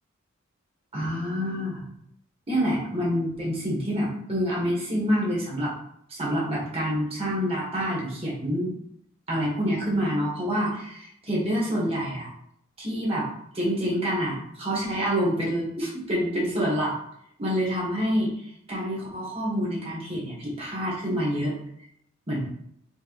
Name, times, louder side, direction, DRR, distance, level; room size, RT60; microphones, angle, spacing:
voice 1, 0.9-1.9 2.5-5.7 6.1-8.8 9.3-12.3 12.8-13.3 13.5-16.9 17.4-18.4 18.7-21.5 22.3-22.4, equal, 30° right, -5 dB, 1.6 m, -27 dB
4.5 x 3.1 x 3.0 m, 0.73 s
head